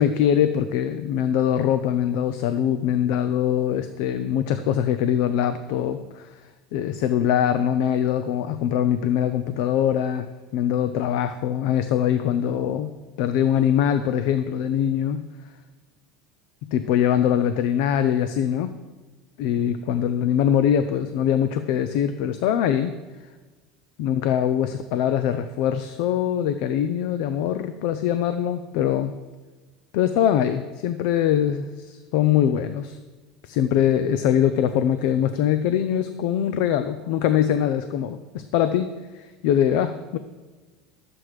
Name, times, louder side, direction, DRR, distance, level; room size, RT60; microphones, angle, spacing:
voice 1, 0.0-10.3 10.5-12.9 13.2-15.2 16.6-18.7 19.4-23.0 24.0-29.1 29.9-33.0 33.4-40.2, left 9 dB, 65° left, 11 dB, 0.6 m, -23 dB
13.0 x 7.7 x 4.9 m, 1.3 s
supercardioid pair, 145°, 0 cm